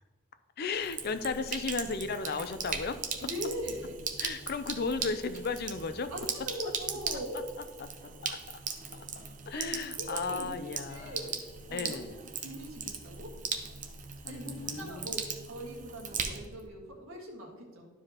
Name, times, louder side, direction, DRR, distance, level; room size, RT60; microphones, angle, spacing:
voice 1, 0.6-3.0 4.2-6.1 7.8-7.9 8.2-8.4 8.9-9.1 9.5-11.3 11.7-12.1 14.2-15.2, left 4 dB, 45° left, 11 dB, 0.4 m, -35 dB
Sink (filling or washing), 0.7-16.7, right 6 dB, 35° right, 0.6 m, -39 dB
voice 2, 3.2-4.0 6.1-7.4 9.5-11.4 11.7-13.3 14.2-17.9, equal, 70° right, -1 dB, 1.7 m, -41 dB
12.5 x 4.8 x 2.9 m, 1.3 s
head